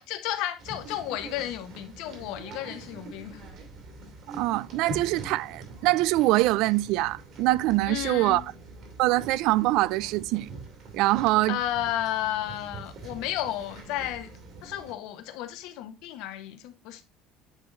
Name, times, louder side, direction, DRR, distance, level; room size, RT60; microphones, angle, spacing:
voice 1, 0.0-3.4 7.9-8.5 11.5-14.3 14.6-17.0, left 12 dB, 65° left, 1.3 m, -33 dB
sound 1, 0.6-14.9, right 2 dB, 45° right, 2.3 m, -44 dB
voice 2, 4.4-8.4 9.0-10.5 10.9-11.6, right 18 dB, 65° right, 0.3 m, -24 dB
9.7 x 3.9 x 3.7 m
cardioid pair, 155°, 0 cm